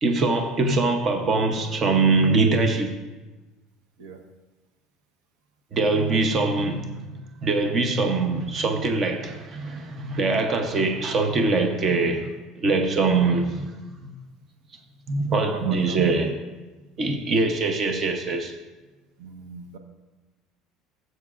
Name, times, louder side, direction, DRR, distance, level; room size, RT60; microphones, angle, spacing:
voice 1, 0.0-2.9 5.7-12.3 12.6-13.7 14.0-14.1 15.1-16.4 17.0-18.5, right 3 dB, 30° right, 5 dB, 0.8 m, -23 dB
voice 2, 15.3-16.0 19.2-19.8, right 4 dB, 85° right, 5 dB, 1.1 m, -40 dB
16.0 x 7.8 x 2.5 m, 1.2 s
cardioid pair, 160°, 0 cm